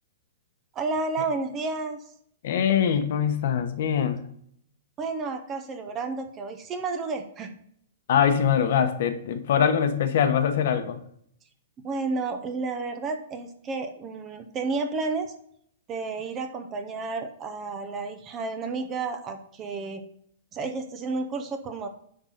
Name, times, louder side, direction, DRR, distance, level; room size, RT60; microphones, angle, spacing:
voice 1, 0.7-2.0 5.0-7.5 11.8-15.3 15.9-20.0 20.5-21.9, right 3 dB, 15° right, 7 dB, 0.6 m, -31 dB
voice 2, 2.4-4.2 8.1-11.0, left 8 dB, 45° left, 8 dB, 1.0 m, -23 dB
10.5 x 3.9 x 5.7 m, 0.67 s
hypercardioid pair, 175°, 0 cm